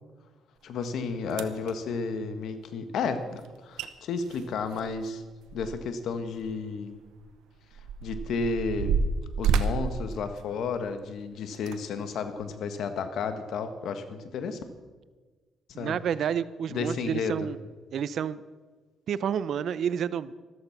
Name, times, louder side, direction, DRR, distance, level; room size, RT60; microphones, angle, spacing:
voice 1, 0.6-5.2 5.5-7.0 8.0-9.0 9.4-14.6 15.8-16.0 16.7-17.5, left 4 dB, 75° left, 9 dB, 1.6 m, -32 dB
sound 1, 0.8-0.9 1.3-1.7 3.4-3.5 3.8-3.9 4.2-6.0 6.4-6.5 7.2-11.0 11.5-11.8 12.4-12.5, right 5 dB, 90° right, 0.9 m, -30 dB
voice 2, 15.7-17.6 17.9-18.4 19.1-20.3, right 8 dB, 65° right, 17 dB, 0.6 m, -29 dB
14.0 x 13.0 x 5.9 m, 1.4 s
cardioid pair, 90°, 0 cm